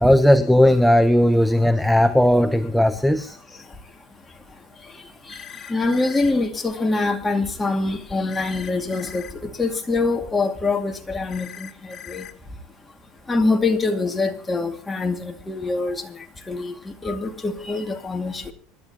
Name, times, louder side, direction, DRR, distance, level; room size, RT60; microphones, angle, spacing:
voice 1, 0.0-3.4, left 1 dB, ahead, 0.9 m, -17 dB
sound 1, 5.3-6.3 8.3-9.3 11.3-12.3, left 9 dB, 45° left, 1.3 m, -40 dB
voice 2, 5.7-9.2 9.6-11.7 12.1-12.3 13.3-16.0 16.5-16.7 17.0-18.5, left 3 dB, 15° left, 2.3 m, -24 dB
25.5 x 12.0 x 3.0 m
supercardioid pair, 105°, 0 cm